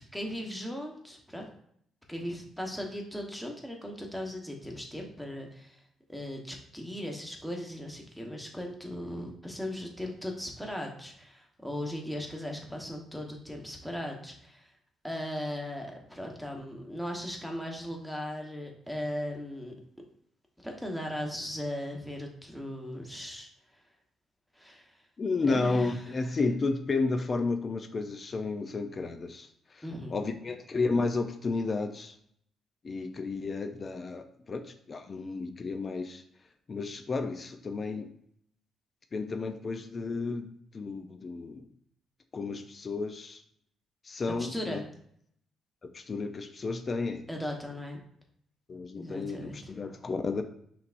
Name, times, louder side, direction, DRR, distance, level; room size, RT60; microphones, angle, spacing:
voice 1, 0.1-1.5 2.1-5.8 6.1-14.7 15.0-19.7 20.6-23.5 24.5-25.0 25.5-26.1 29.8-30.1 44.3-44.9 47.3-48.0 48.9-49.8, left 1 dB, ahead, 1 dB, 1.1 m, -38 dB
voice 2, 25.2-29.5 29.7-29.8 30.1-32.2 32.8-36.2 36.7-38.1 39.1-40.5 40.7-41.7 42.3-43.4 44.0-44.8 45.8-47.2 48.7-50.4, left 3 dB, 40° left, 7 dB, 0.5 m, -32 dB
5.6 x 3.3 x 2.6 m, 0.68 s
cardioid pair, 90°, 0 cm